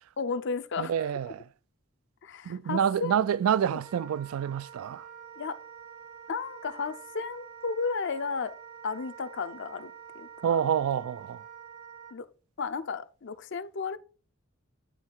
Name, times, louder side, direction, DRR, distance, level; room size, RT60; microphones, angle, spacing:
voice 1, 0.2-0.9 2.2-3.2 5.4-5.6 6.3-8.5 8.8-10.6 12.1-12.3 12.6-14.0, left 4 dB, 60° left, 0.5 m, -33 dB
voice 2, 0.8-1.5 2.4-5.1 10.4-11.4, right 8 dB, 90° right, 0.3 m, -28 dB
Wind instrument woodwind instrument, 3.8-12.2, right 7 dB, 70° right, 1.0 m, -47 dB
9.4 x 3.2 x 4.5 m
head